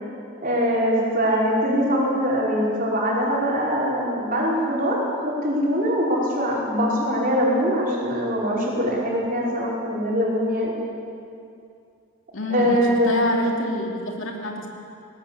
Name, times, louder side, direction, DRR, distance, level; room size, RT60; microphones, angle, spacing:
voice 1, 0.4-10.7 12.5-13.3, equal, 40° right, -4 dB, 5.1 m, -22 dB
voice 2, 12.3-14.7, left 1 dB, 65° left, 1 dB, 2.9 m, -27 dB
19.5 x 18.0 x 8.4 m, 2.5 s
head